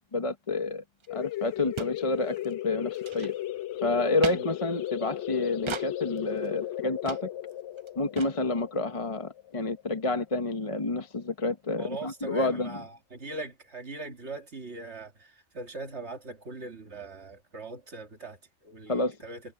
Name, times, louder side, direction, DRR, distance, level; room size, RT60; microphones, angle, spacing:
voice 1, 0.1-0.8 1.1-3.3 3.8-7.3 8.0-12.7 18.9-19.2, left 2 dB, 30° left, 1.0 m, -29 dB
sound 1, 1.0-1.1 1.3-1.4 1.8-2.0 2.3-2.5 2.9-3.6 4.2-4.4 5.7-5.9 6.4-6.5 7.1-7.2 7.5-7.6 7.8-7.9 8.2-8.3, right 5 dB, 45° right, 0.3 m, -36 dB
sound 2, 1.1-10.4, left 13 dB, 75° left, 0.9 m, -36 dB
voice 2, 11.8-19.4, right 3 dB, 65° right, 2.3 m, -41 dB
omnidirectional pair, 1.2 m